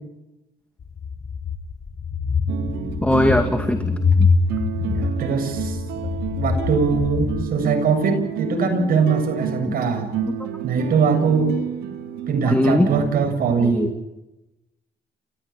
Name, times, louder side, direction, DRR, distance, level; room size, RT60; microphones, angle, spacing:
sound 1, 0.8-7.5, left 4 dB, 45° left, 2.2 m, -24 dB
sound 2, 2.5-13.4, right 7 dB, 90° right, 3.5 m, -30 dB
voice 1, 3.0-4.3 9.7-9.8 10.3-10.4 12.5-12.9 13.6-13.9, left 1 dB, 10° left, 6 dB, 2.2 m, -21 dB
voice 2, 4.8-6.1 6.4-10.1 10.6-11.5 12.3-13.9, right 5 dB, 65° right, 5 dB, 7.4 m, -21 dB
29.0 x 15.5 x 8.8 m, 0.96 s
cardioid pair, 80°, 16 cm